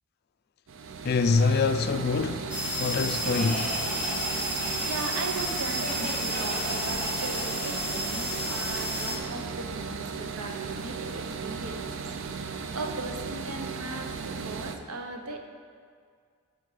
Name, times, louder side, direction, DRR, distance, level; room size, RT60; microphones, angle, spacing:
sound 1, 0.7-14.8, right 5 dB, 55° right, 0.4 m, -36 dB
voice 1, 1.0-2.5 2.8-3.8, left 4 dB, 45° left, 0.3 m, -25 dB
sound 2, 2.5-9.2, equal, 5° right, 0.9 m, -32 dB
Laughter, 3.2-8.9, equal, 35° right, 2.0 m, -37 dB
voice 2, 4.8-15.4, right 3 dB, 90° right, 0.9 m, -38 dB
7.7 x 7.4 x 4.9 m
head